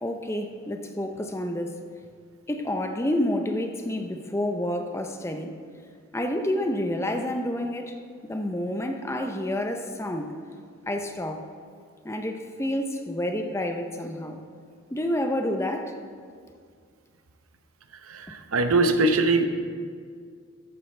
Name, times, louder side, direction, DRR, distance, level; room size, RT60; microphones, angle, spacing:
voice 1, 0.0-1.8 2.5-5.6 6.1-8.0 8.3-10.4 10.9-11.4 12.0-14.4 14.9-16.0 18.3-18.4, left 1 dB, 15° left, 0.6 m, -29 dB
voice 2, 18.1-19.4, right 2 dB, 90° right, 0.8 m, -22 dB
13.5 x 10.0 x 3.3 m
head